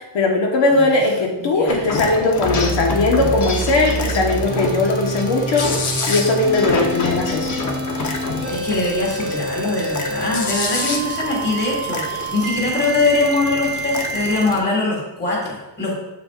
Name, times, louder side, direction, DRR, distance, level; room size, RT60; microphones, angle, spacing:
voice 1, 0.0-5.7 6.1-7.5, left 3 dB, 85° left, 0 dB, 1.4 m, -19 dB
voice 2, 1.4-1.8 8.5-16.0, left 2 dB, 25° left, -3 dB, 1.8 m, -22 dB
sound 1, 1.7-14.6, left 3 dB, 40° left, 0.9 m, -28 dB
sound 2, 2.4-14.4, right 3 dB, 25° right, 0.9 m, -28 dB
7.5 x 7.5 x 2.5 m, 0.98 s
wide cardioid pair, 180°, 44 cm